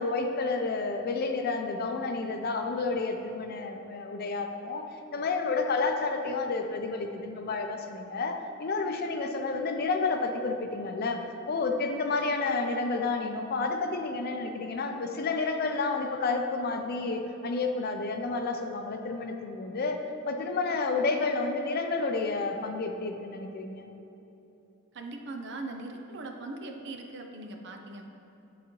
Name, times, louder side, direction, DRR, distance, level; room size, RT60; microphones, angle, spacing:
voice 1, 0.0-4.8 5.1-11.2 11.5-23.9, left 3 dB, 50° left, 5 dB, 0.5 m, -30 dB
voice 2, 24.9-28.1, right 2 dB, 60° right, 3 dB, 0.6 m, -40 dB
9.7 x 4.0 x 3.1 m, 3.0 s
head